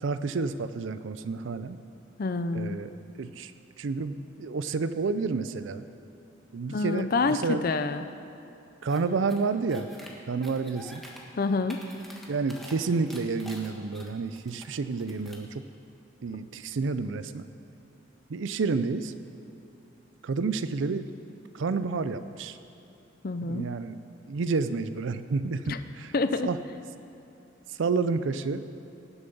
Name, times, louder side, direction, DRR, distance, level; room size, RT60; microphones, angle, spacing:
voice 1, 0.0-1.8 2.5-2.9 3.2-3.5 3.8-5.8 6.5-7.6 8.8-9.9 10.3-11.0 12.3-15.6 16.2-17.5 18.3-19.1 20.2-21.0 21.5-22.6 23.5-24.0 24.3-26.1 26.4-26.6 27.7-28.7, right 4 dB, 80° right, 12 dB, 0.5 m, -30 dB
voice 2, 2.2-2.8 6.7-8.0 11.4-11.8 23.2-23.7 25.7-25.8 26.1-26.5, left 3 dB, 50° left, 10 dB, 0.5 m, -27 dB
sound 1, 8.9-9.0 9.3-10.1 10.4-11.2 11.5-12.7 13.1-14.6 15.0-15.5, equal, ahead, 1.3 m, -47 dB
18.5 x 7.1 x 5.4 m, 2.8 s
head